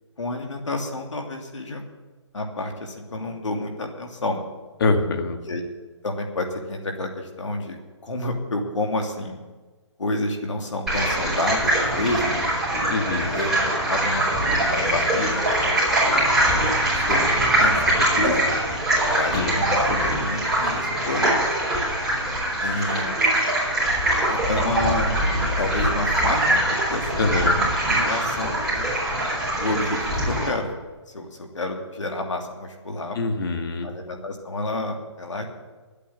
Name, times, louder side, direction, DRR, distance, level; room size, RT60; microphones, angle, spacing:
voice 1, 0.2-1.9 2.3-4.5 5.4-5.6 6.0-7.8 8.0-9.4 10.0-12.4 13.1-16.3 16.9-17.2 17.6-18.5 19.0-21.5 22.6-23.2 24.3-25.2 25.6-29.0 29.6-30.7 31.1-33.2 33.8-35.4, left 2 dB, 85° left, 2 dB, 2.9 m, -29 dB
voice 2, 4.8-5.4 12.9-13.3 19.3-19.6 27.2-27.6 33.1-33.9, left 3 dB, 50° left, 5 dB, 1.9 m, -24 dB
sound 1, 10.9-30.5, right 1 dB, ahead, 4.6 m, -22 dB
11.5 x 8.6 x 8.8 m, 1.3 s
hypercardioid pair, 160°, 15 cm